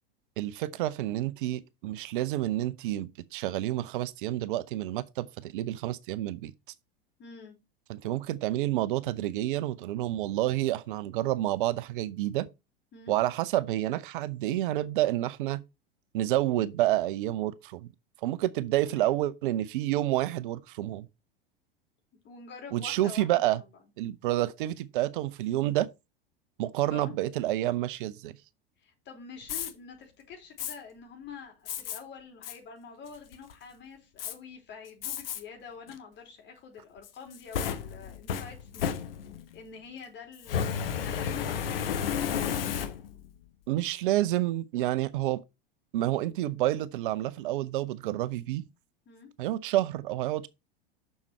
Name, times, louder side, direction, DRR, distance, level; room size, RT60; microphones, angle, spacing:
voice 1, 0.4-6.5 7.9-12.5 13.1-15.6 16.1-17.9 18.2-21.1 22.7-23.6 24.0-25.9 26.6-28.3 43.7-45.4 45.9-48.6 49.4-50.5, right 15 dB, 60° right, 0.7 m, -29 dB
voice 2, 7.2-7.5 12.9-13.1 18.8-19.2 22.2-23.6 26.8-27.1 28.8-38.9 39.5-42.1 49.0-49.3, left 5 dB, 40° left, 4.9 m, -47 dB
Fire, 29.4-29.7 30.6-30.7 31.7-32.0 32.4-32.6 33.1-33.5 34.2-34.3 35.0-35.4 35.9-36.0 37.0-39.5 40.4-43.3, left 8 dB, 75° left, 1.2 m, -32 dB
7.2 x 6.6 x 4.4 m
hypercardioid pair, 90°, 29 cm